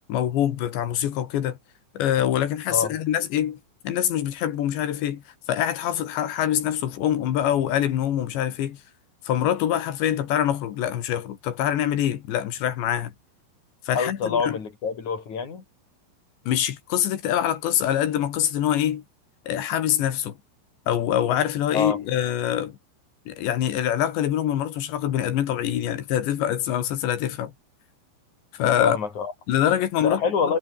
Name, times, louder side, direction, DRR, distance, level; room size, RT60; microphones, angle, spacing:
voice 1, 0.1-1.6 2.0-3.6 3.8-5.2 5.5-8.8 9.3-13.1 13.9-14.6 16.5-19.0 19.5-20.3 20.9-22.8 23.3-27.5 28.6-29.0 29.5-30.2, left 11 dB, 65° left, 4.0 m, -24 dB
voice 2, 13.9-15.6 21.7-22.0 28.8-29.3 30.0-30.6, left 5 dB, 40° left, 4.9 m, -25 dB
omnidirectional pair, 5.7 m